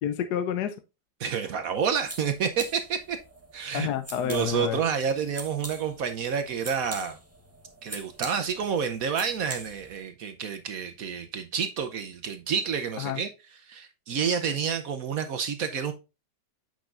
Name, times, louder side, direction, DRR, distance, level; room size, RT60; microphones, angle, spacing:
voice 1, 0.0-0.8 3.7-4.8 13.0-13.2, left 9 dB, 70° left, 1.2 m, -29 dB
voice 2, 1.2-3.2 3.5-3.9 4.2-7.2 7.8-13.3 13.7-15.9, right 7 dB, 65° right, 1.0 m, -29 dB
sound 1, 1.7-10.0, right 2 dB, 10° right, 0.7 m, -44 dB
8.3 x 6.0 x 2.5 m
omnidirectional pair, 1.9 m